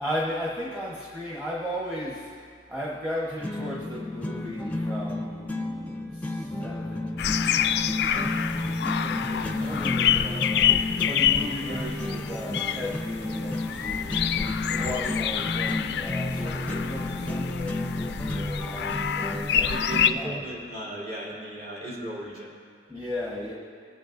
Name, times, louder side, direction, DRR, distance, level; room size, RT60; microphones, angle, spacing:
voice 1, 0.0-2.3 2.7-19.7 20.1-20.5 22.9-23.5, equal, 10° right, -5 dB, 1.1 m, -36 dB
sound 1, 3.4-20.4, left 2 dB, 10° left, 0.5 m, -32 dB
sound 2, 7.2-20.1, left 9 dB, 60° left, 0.3 m, -27 dB
voice 2, 19.5-22.6, right 1 dB, 50° right, -6 dB, 2.8 m, -36 dB
21.5 x 8.6 x 2.6 m, 2.2 s
head